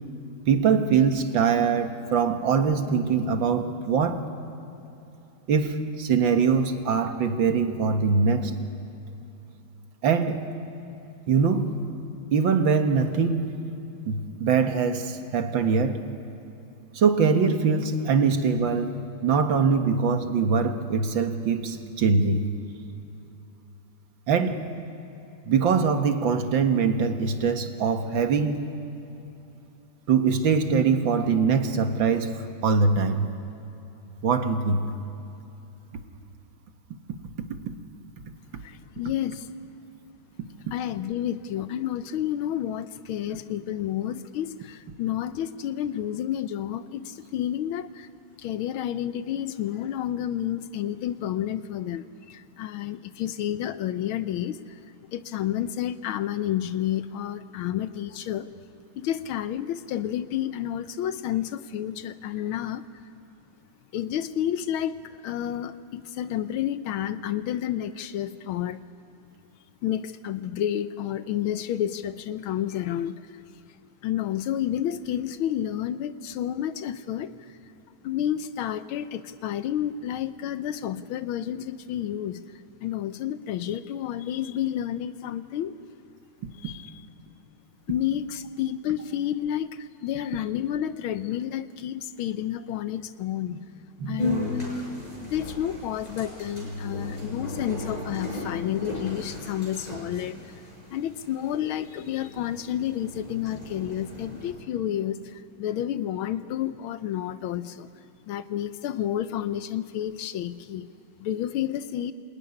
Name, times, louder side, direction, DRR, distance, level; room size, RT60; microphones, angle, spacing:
voice 1, 0.5-4.2 5.5-8.5 10.0-10.4 11.3-11.7 12.3-13.5 14.1-16.0 16.9-22.5 24.3-24.6 25.4-28.7 30.1-33.3 34.2-34.9 94.0-94.4, right 5 dB, 70° right, 6 dB, 2.2 m, -23 dB
voice 2, 38.6-39.5 40.7-48.1 48.4-54.8 55.1-58.5 59.0-62.9 63.9-68.8 69.8-73.4 74.0-77.6 78.0-85.7 86.5-87.0 87.9-93.6 94.1-94.9 95.2-100.6 100.9-107.9 108.3-110.9 111.2-112.1, left 11 dB, 80° left, 12 dB, 1.6 m, -30 dB
sound 1, 94.2-104.5, left 2 dB, 20° left, 6.7 m, -35 dB
27.0 x 19.5 x 9.9 m, 3.0 s
omnidirectional pair, 2.2 m